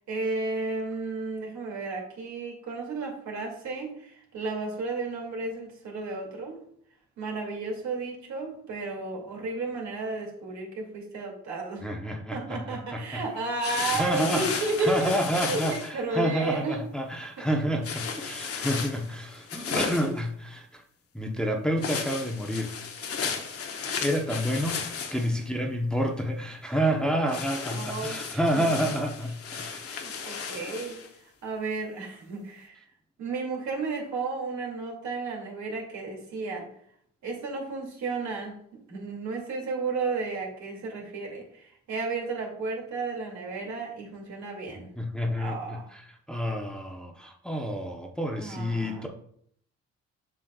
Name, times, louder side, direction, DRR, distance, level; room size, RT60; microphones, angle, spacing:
voice 1, 0.0-6.6 7.2-11.9 12.3-15.1 15.4-16.8 17.4-17.6 27.7-28.9 29.9-31.0 31.4-32.8 33.2-36.7 37.2-38.6 38.9-44.9 45.4-45.9 48.4-49.1, right 3 dB, 70° right, -1 dB, 2.4 m, -33 dB
voice 2, 11.8-13.2 13.7-20.8 21.1-22.8 24.0-24.8 25.1-30.0 45.0-46.0 46.3-49.1, equal, 5° left, 2 dB, 0.7 m, -29 dB
sound 1, 13.6-15.9 17.8-20.2 21.8-25.4 27.3-31.1, left 6 dB, 50° left, 0.9 m, -34 dB
7.6 x 6.1 x 2.3 m, 0.65 s
cardioid pair, 90°, 30 cm